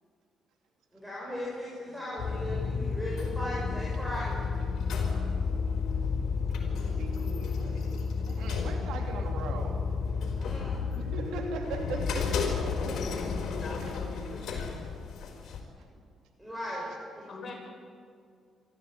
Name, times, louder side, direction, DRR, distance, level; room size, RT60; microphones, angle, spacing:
voice 1, 0.9-4.4 10.4-10.7 16.4-17.3, equal, 5° right, -5 dB, 6.8 m, -37 dB
sound 1, 2.2-15.6, left 5 dB, 70° left, 4.4 m, -31 dB
voice 2, 6.5-10.0 10.9-12.5, right 4 dB, 85° right, 3 dB, 3.0 m, -40 dB
voice 3, 13.5-14.9 17.3-17.5, left 2 dB, 35° left, -1 dB, 7.2 m, -43 dB
25.5 x 13.5 x 9.0 m, 2.3 s
cardioid pair, 90°, 0 cm